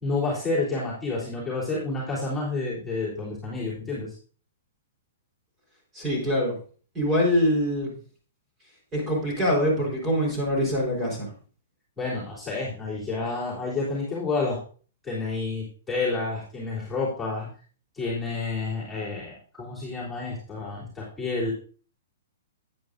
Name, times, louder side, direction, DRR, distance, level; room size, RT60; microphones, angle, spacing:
voice 1, 0.0-4.1 12.0-14.6 15.0-17.5 17.9-21.5, left 3 dB, 5° left, -9 dB, 3.4 m, -29 dB
voice 2, 5.9-6.5 6.9-7.9 8.9-11.3, equal, 15° right, -1 dB, 4.1 m, -24 dB
10.5 x 9.4 x 2.6 m, 0.41 s
hypercardioid pair, 150°, 0 cm